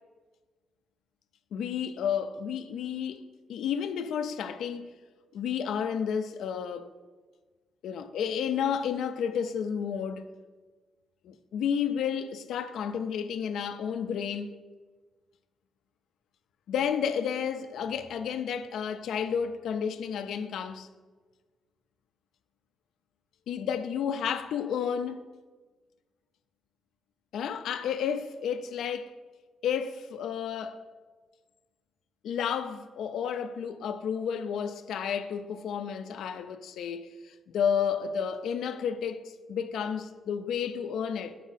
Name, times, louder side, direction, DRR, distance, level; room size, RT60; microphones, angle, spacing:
voice 1, 1.5-3.2 3.5-5.0 5.3-6.9 7.8-10.2 11.2-14.5 16.7-20.9 23.5-25.2 27.3-29.1 29.6-30.8 32.2-41.3, left 7 dB, 80° left, 0.4 m, -31 dB
6.1 x 4.6 x 4.0 m
cardioid pair, 135°, 0 cm